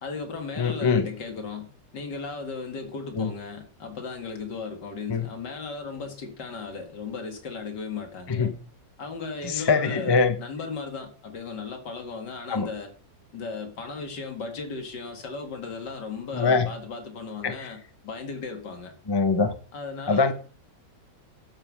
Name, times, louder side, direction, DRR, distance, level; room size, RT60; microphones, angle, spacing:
voice 1, 0.0-8.5 9.0-12.9 13.3-19.0 19.7-20.3, left 4 dB, 65° left, 2.5 m, -36 dB
voice 2, 0.6-1.1 3.2-3.3 5.1-5.3 8.3-8.6 9.4-10.4 12.5-12.7 16.3-16.7 17.4-17.5 19.1-19.5 20.1-20.3, left 4 dB, 25° left, 0.5 m, -23 dB
12.5 x 5.6 x 6.2 m
omnidirectional pair, 2.0 m